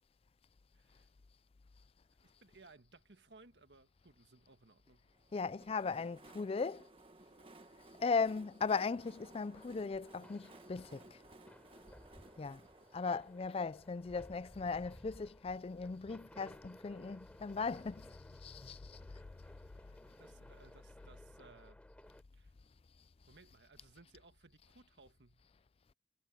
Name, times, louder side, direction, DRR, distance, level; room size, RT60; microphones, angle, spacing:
voice 1, 0.8-1.1 2.2-5.1 20.2-21.8 22.3-22.5 23.3-25.5, right 3 dB, 75° right, 1.7 m, -62 dB
Train, 5.1-14.8, right 2 dB, 30° right, 1.7 m, -59 dB
voice 2, 5.3-6.9 8.0-11.2 12.4-12.6 12.9-19.0, left 4 dB, 35° left, 0.4 m, -38 dB
sound 1, 9.0-22.2, equal, 5° left, 3.5 m, -59 dB
head